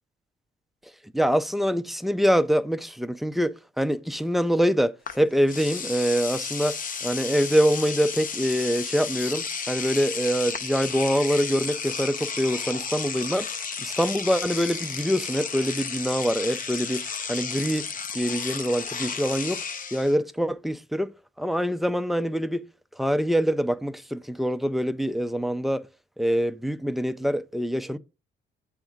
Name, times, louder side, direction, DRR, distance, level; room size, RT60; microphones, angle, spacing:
voice 1, 1.1-13.5 13.8-17.0 17.3-17.9 18.1-19.6 19.9-22.7 23.0-25.9 26.2-28.0, equal, ahead, 0.5 m, -25 dB
Engine / Domestic sounds home sounds, 5.1-5.2 5.5-20.1, left 5 dB, 45° left, 0.7 m, -33 dB
8.1 x 3.6 x 5.0 m
cardioid pair, 90°, 20 cm